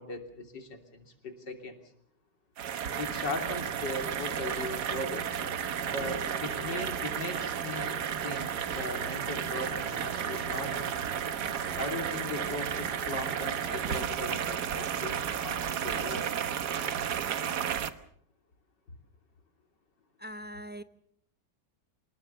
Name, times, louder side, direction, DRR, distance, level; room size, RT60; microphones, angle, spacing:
voice 1, 0.0-1.8 3.0-5.3 5.9-8.0 8.2-11.0 11.8-16.3, left 2 dB, 90° left, 5 dB, 3.7 m, -38 dB
sound 1, 2.6-17.9, right 8 dB, 70° right, 1.7 m, -33 dB
sound 2, 3.8-14.1, left 2 dB, 35° left, 4.3 m, -48 dB
voice 2, 20.2-20.8, equal, 15° right, 11 dB, 0.4 m, -41 dB
26.0 x 20.0 x 6.9 m, 0.63 s
omnidirectional pair, 1.8 m